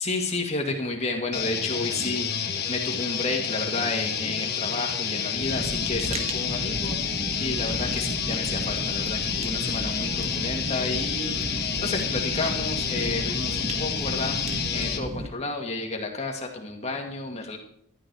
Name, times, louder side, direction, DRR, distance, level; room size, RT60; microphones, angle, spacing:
voice 1, 0.0-14.4 14.7-17.6, left 2 dB, 30° left, 2 dB, 2.2 m, -31 dB
sound 1, 1.3-15.0, left 7 dB, 50° left, 1.3 m, -29 dB
Fire, 5.4-15.3, right 1 dB, 30° right, 1.5 m, -34 dB
12.5 x 12.0 x 4.8 m, 0.66 s
head